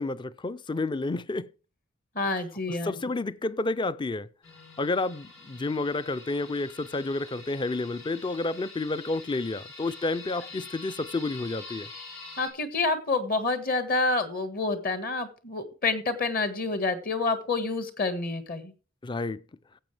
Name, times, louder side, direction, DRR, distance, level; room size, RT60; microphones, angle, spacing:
voice 1, 0.0-1.5 2.7-4.3 4.8-11.9 19.0-19.4, left 2 dB, 25° left, 0.4 m, -30 dB
voice 2, 2.1-3.0 12.4-18.7, left 3 dB, 45° left, 1.6 m, -28 dB
sound 1, 4.4-12.5, left 3 dB, 80° left, 4.4 m, -46 dB
15.5 x 7.7 x 3.3 m
head